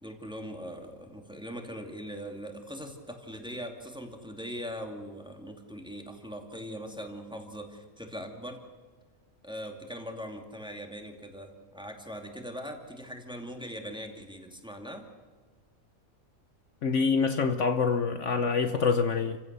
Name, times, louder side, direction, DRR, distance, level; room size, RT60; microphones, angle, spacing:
voice 1, 0.0-8.6 9.4-15.1, equal, 5° right, 3 dB, 2.5 m, -41 dB
voice 2, 16.8-19.4, left 5 dB, 60° left, 9 dB, 1.2 m, -26 dB
29.5 x 16.0 x 6.8 m, 1.5 s
omnidirectional pair, 1.5 m